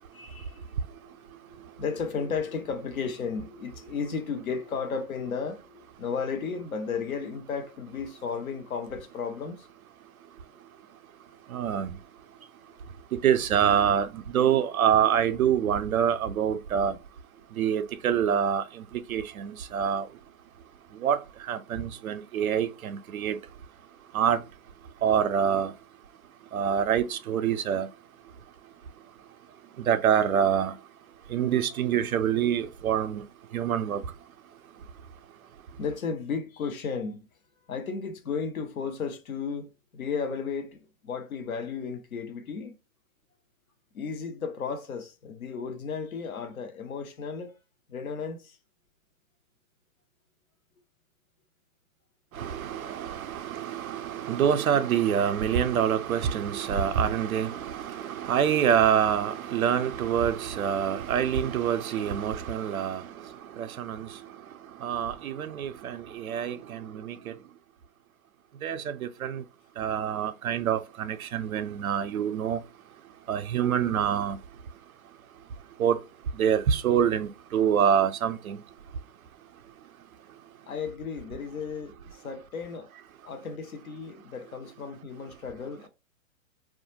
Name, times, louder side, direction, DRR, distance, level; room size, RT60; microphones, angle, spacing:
voice 1, 0.1-0.7 1.0-9.7 35.8-37.2 37.7-42.8 43.9-47.6 47.9-48.6 80.7-82.9 83.2-85.9, left 5 dB, 85° left, 0.7 m, -34 dB
voice 2, 11.5-11.9 13.1-16.9 17.6-18.6 19.1-20.1 21.0-21.2 21.5-23.4 24.1-24.4 25.0-25.7 26.5-27.9 29.9-30.7 31.3-33.2 33.5-34.0 52.4-63.0 63.6-64.1 64.8-67.3 68.6-69.4 69.8-72.6 73.3-74.4 75.8-76.0 76.4-78.6, right 8 dB, 85° right, 0.5 m, -26 dB
2.3 x 2.1 x 3.0 m
hypercardioid pair, 130°, 41 cm